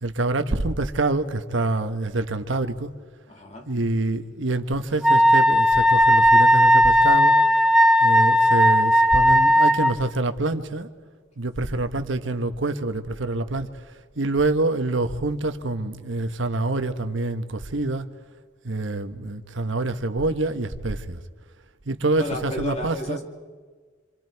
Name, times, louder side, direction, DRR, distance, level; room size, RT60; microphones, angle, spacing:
voice 1, 0.0-2.9 3.7-7.4 8.0-10.9 11.4-18.1 18.6-21.2 21.8-23.2, right 2 dB, 75° right, 1.2 m, -26 dB
voice 2, 3.3-3.7 22.2-23.3, left 1 dB, 35° left, 2.4 m, -32 dB
Wind instrument woodwind instrument, 5.0-9.9, equal, 5° right, 0.8 m, -16 dB
27.5 x 26.5 x 4.7 m
head